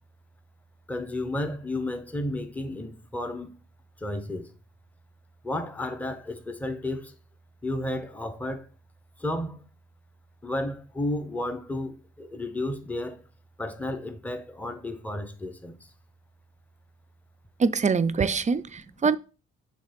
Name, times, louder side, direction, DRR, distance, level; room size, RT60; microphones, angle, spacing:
voice 1, 0.9-3.5 4.0-4.5 5.4-7.1 7.6-8.7 9.2-9.7 10.4-13.3 13.6-15.8, left 1 dB, 5° left, 0.9 m, -32 dB
voice 2, 17.6-19.2, right 5 dB, 25° right, 0.5 m, -24 dB
6.4 x 3.5 x 5.1 m
cardioid pair, 90°, 30 cm